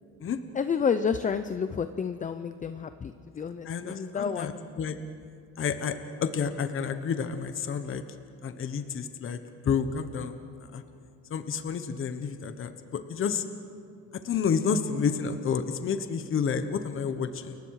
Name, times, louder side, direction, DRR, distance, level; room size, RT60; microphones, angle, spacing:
voice 1, 0.5-4.6, left 6 dB, 25° left, 10 dB, 0.6 m, -30 dB
voice 2, 3.6-4.5 4.8-5.0 5.6-8.0 8.4-10.3 10.6-10.8 11.3-13.4 14.1-17.6, left 6 dB, 40° left, 9 dB, 1.2 m, -30 dB
29.5 x 22.5 x 4.9 m, 2.4 s
cardioid pair, 135°, 31 cm